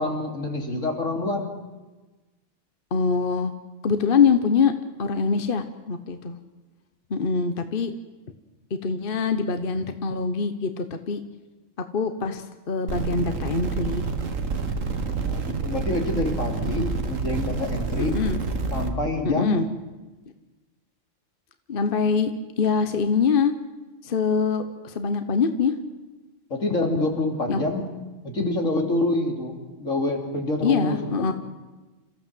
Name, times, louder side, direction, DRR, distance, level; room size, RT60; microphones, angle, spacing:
voice 1, 0.0-1.5 15.0-18.2 18.7-19.6 26.5-27.9 28.2-31.3, left 2 dB, 75° left, 2 dB, 3.4 m, -27 dB
voice 2, 2.9-3.5 3.8-4.7 5.0-6.4 7.1-7.9 8.8-11.2 11.9-14.0 16.7-17.0 18.0-18.4 19.2-19.7 21.7-22.3 22.6-23.5 24.0-25.7 27.5-27.6 30.6-31.3, left 5 dB, 45° left, 9 dB, 1.2 m, -24 dB
sound 1, 12.9-18.9, right 4 dB, 85° right, 2.0 m, -28 dB
28.0 x 15.0 x 7.7 m, 1.2 s
omnidirectional pair, 1.3 m